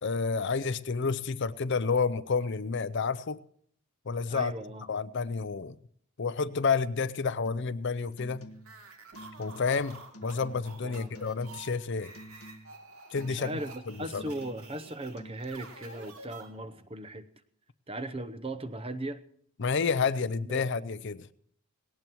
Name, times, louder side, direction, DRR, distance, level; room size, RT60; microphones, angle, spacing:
voice 1, 0.0-3.4 4.1-4.5 4.9-5.8 6.2-8.5 9.4-12.1 13.1-13.5 14.1-14.2 19.6-21.3, left 5 dB, 50° left, 0.5 m, -30 dB
voice 2, 4.3-4.9 10.8-11.1 13.2-17.3 17.9-19.2 20.2-20.6, right 1 dB, 25° right, 0.8 m, -38 dB
sound 1, 7.4-7.8 8.1-8.8 9.1-9.8 10.1-10.8 11.1-11.8 12.1-12.8 13.2-13.8 14.1-14.8 15.2-15.4, equal, 85° left, 1.5 m, -49 dB
sound 2, 8.6-16.9, right 3 dB, 75° right, 2.7 m, -49 dB
19.0 x 17.5 x 3.0 m
head